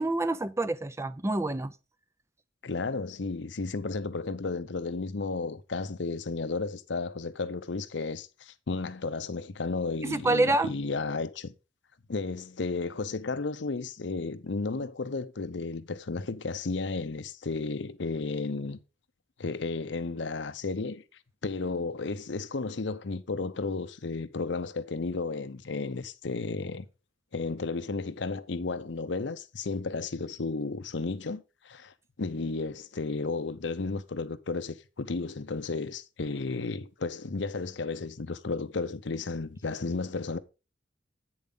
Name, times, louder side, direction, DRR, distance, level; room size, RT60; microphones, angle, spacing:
voice 1, 0.0-1.7 10.0-10.7, right 2 dB, 15° right, 0.5 m, -27 dB
voice 2, 2.6-11.5 12.1-18.8 19.4-21.0 21.4-26.8 27.3-40.4, left 3 dB, 70° left, 0.7 m, -33 dB
8.7 x 7.1 x 3.9 m
head